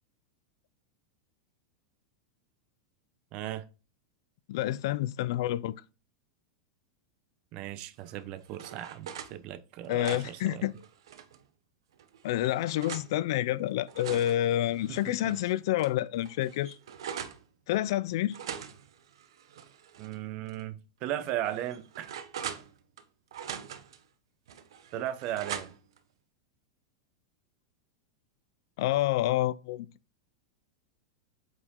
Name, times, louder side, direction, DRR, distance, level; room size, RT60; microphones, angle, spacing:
voice 1, 3.3-3.6 7.5-10.7 14.9-15.3 20.0-22.1 24.9-25.7, right 12 dB, 45° right, 0.9 m, -37 dB
voice 2, 4.5-5.8 9.9-10.7 12.2-16.8 17.7-18.4 28.8-29.9, left 14 dB, 65° left, 0.4 m, -28 dB
sound 1, 8.1-9.3 9.8-11.4 12.0-13.1 13.7-15.4 15.8-15.9 16.2-17.4 18.3-20.2 20.5-20.6 21.2-23.0 23.3-24.0 24.5-26.0, right 8 dB, 85° right, 1.0 m, -42 dB
8.2 x 5.0 x 3.7 m
supercardioid pair, 140°, 2 cm